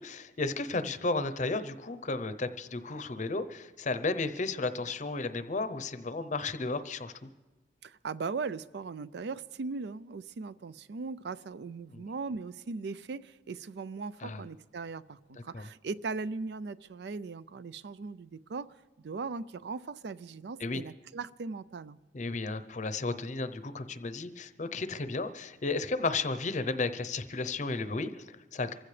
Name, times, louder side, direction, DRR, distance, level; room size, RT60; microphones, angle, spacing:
voice 1, 0.0-7.3 11.9-12.0 14.2-14.4 15.5-15.7 20.6-20.8 22.1-28.7, left 3 dB, 45° left, 12 dB, 0.7 m, -33 dB
voice 2, 7.8-22.0, right 4 dB, 65° right, 17 dB, 0.4 m, -39 dB
27.5 x 15.5 x 3.3 m, 1.2 s
head